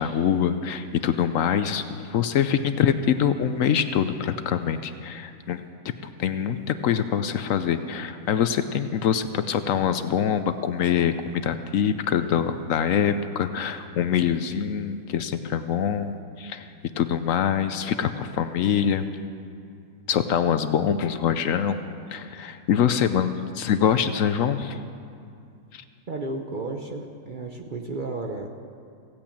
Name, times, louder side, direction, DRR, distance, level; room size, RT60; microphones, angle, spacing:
voice 1, 0.0-5.6 6.2-16.7 17.0-19.0 20.1-21.8 22.1-24.8 25.7-25.8, left 8 dB, 65° left, 10 dB, 0.9 m, -24 dB
voice 2, 26.1-28.5, right 2 dB, 40° right, 3 dB, 0.8 m, -33 dB
16.0 x 8.7 x 8.6 m, 2.4 s
omnidirectional pair, 1.6 m